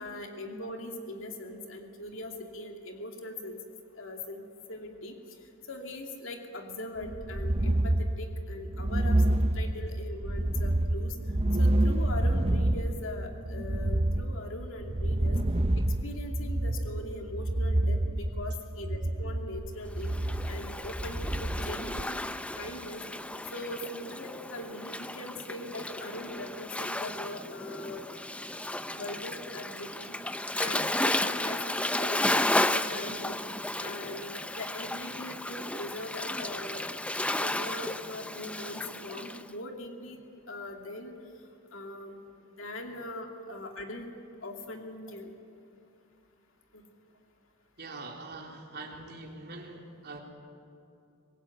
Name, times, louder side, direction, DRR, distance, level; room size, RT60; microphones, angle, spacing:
voice 1, 0.0-3.6 4.0-4.4 4.7-5.2 5.7-11.2 11.6-15.4 16.0-20.1 20.5-22.2 22.6-23.0 23.5-28.1 28.9-30.2 30.6-33.4 33.8-36.8 37.3-40.2 40.5-41.1 41.7-42.2 42.6-44.1 44.4-45.3 46.7-46.8, left 1 dB, 65° left, 3 dB, 2.6 m, -41 dB
sound 1, 7.0-22.0, right 1 dB, 30° right, 0.8 m, -28 dB
Waves surf, 20.0-39.4, left 1 dB, 5° left, 0.5 m, -33 dB
voice 2, 47.8-50.2, right 3 dB, 50° right, 0 dB, 3.9 m, -43 dB
24.5 x 20.0 x 9.3 m, 2.7 s
head